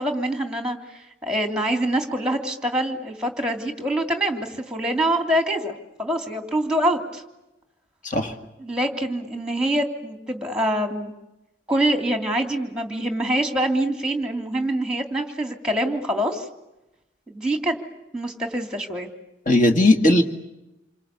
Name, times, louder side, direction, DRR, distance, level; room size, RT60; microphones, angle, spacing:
voice 1, 0.0-5.7 6.0-7.2 8.6-11.1 11.7-16.5 17.3-17.8 18.1-19.1, right 1 dB, 5° right, 5 dB, 3.0 m, -25 dB
voice 2, 8.0-8.4 19.5-20.2, left 1 dB, 45° left, 5 dB, 2.3 m, -17 dB
28.0 x 25.0 x 8.4 m, 0.94 s
head